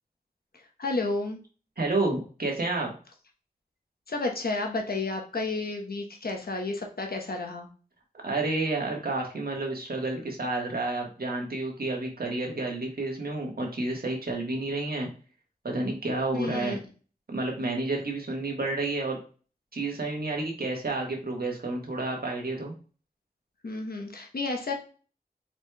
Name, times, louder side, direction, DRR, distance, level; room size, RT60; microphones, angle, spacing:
voice 1, 0.8-1.4 4.1-7.7 16.3-16.8 23.6-24.7, left 3 dB, 85° left, 2 dB, 1.0 m, -31 dB
voice 2, 1.8-2.9 8.2-15.1 15.6-16.8 17.3-19.2 19.7-22.7, right 2 dB, 80° right, 0 dB, 1.4 m, -30 dB
4.8 x 4.2 x 2.2 m, 0.38 s
wide cardioid pair, 60°, 15 cm